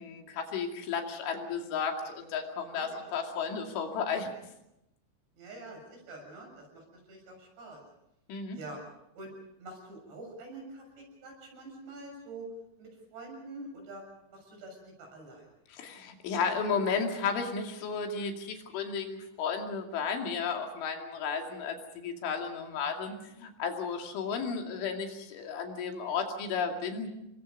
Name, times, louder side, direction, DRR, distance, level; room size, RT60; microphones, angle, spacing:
voice 1, 0.0-4.3 8.3-8.6 15.7-27.1, left 5 dB, 90° left, 3 dB, 5.0 m, -33 dB
voice 2, 2.7-3.1 5.4-7.8 8.5-8.8 9.2-9.3 9.6-12.5 12.8-14.0 14.3-15.5, right 2 dB, 65° right, 2 dB, 8.9 m, -46 dB
28.5 x 22.5 x 5.4 m, 0.84 s
omnidirectional pair, 5.3 m